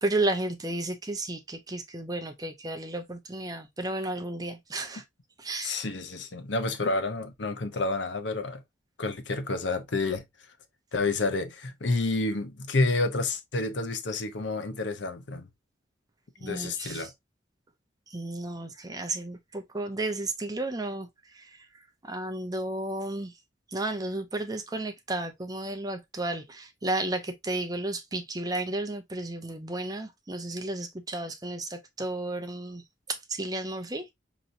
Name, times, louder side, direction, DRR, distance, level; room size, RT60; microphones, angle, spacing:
voice 1, 0.0-5.0 5.4-5.8 16.4-17.1 18.1-21.1 21.3-21.5 22.0-23.3 23.7-32.8 33.1-34.1, right 2 dB, 20° right, 0.6 m, -33 dB
voice 2, 5.6-8.6 9.0-10.2 10.9-15.5 16.4-17.1, left 3 dB, 70° left, 0.8 m, -29 dB
5.3 x 3.0 x 2.6 m
head